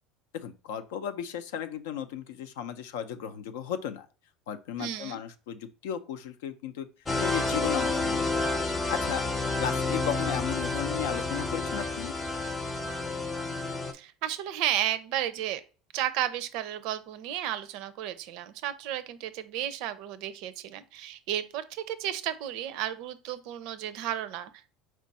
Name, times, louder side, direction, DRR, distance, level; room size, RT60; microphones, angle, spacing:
voice 1, 0.3-4.1 4.5-6.9 7.2-8.4 8.9-9.2 9.6-12.1, left 9 dB, 85° left, 9 dB, 0.5 m, -35 dB
voice 2, 4.8-5.2 13.9-15.6 15.9-24.7, right 12 dB, 70° right, 14 dB, 0.4 m, -33 dB
sound 1, 7.1-13.9, left 3 dB, 25° left, 0.7 m, -30 dB
4.5 x 2.5 x 4.0 m, 0.36 s
supercardioid pair, 105°, 0 cm